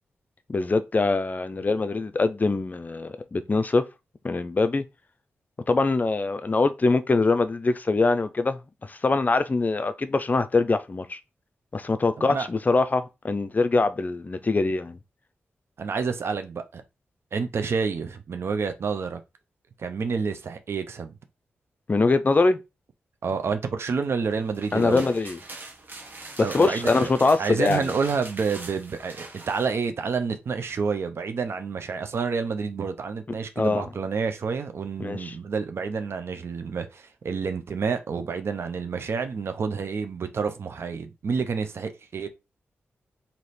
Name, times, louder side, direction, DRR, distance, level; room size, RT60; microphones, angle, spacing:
voice 1, 0.5-3.8 4.2-4.8 5.7-11.2 11.7-15.0 21.9-22.6 24.7-25.4 26.5-27.9 33.3-33.9 35.0-35.3, left 3 dB, 40° left, 0.5 m, -23 dB
voice 2, 12.2-12.5 15.8-16.8 17.3-19.2 19.8-21.1 23.2-25.0 26.4-27.1 27.4-42.3, right 5 dB, 65° right, 0.7 m, -29 dB
sound 1, 24.4-29.7, right 2 dB, 45° right, 1.0 m, -42 dB
3.2 x 2.8 x 4.2 m
cardioid pair, 55°, 5 cm